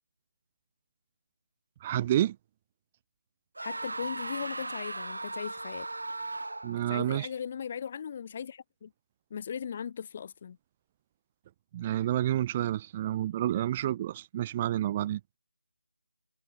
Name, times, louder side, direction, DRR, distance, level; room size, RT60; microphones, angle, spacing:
voice 1, 1.8-2.4 6.6-7.3 11.7-15.2, right 12 dB, 15° right, 1.7 m, -29 dB
voice 2, 3.6-5.9 6.9-8.9 9.3-10.6, left 7 dB, 25° left, 2.8 m, -38 dB
sound 1, 3.6-6.9, right 2 dB, 85° right, 4.3 m, -37 dB
figure-of-eight pair, 175°, 0 cm